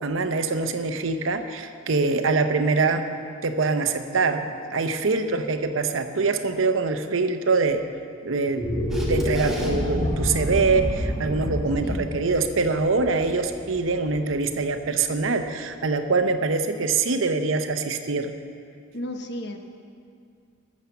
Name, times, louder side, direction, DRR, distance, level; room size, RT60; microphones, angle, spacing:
voice 1, 0.0-3.1 3.4-7.8 8.2-18.3, right 4 dB, 85° right, 8 dB, 0.7 m, -24 dB
sound 1, 8.4-14.8, equal, 25° left, 3.1 m, -28 dB
Camera, 8.9-9.7 16.4-16.5, right 1 dB, ahead, 1.3 m, -40 dB
voice 2, 18.9-19.6, left 1 dB, 55° left, 5 dB, 0.9 m, -33 dB
12.5 x 7.3 x 6.9 m, 2.3 s
head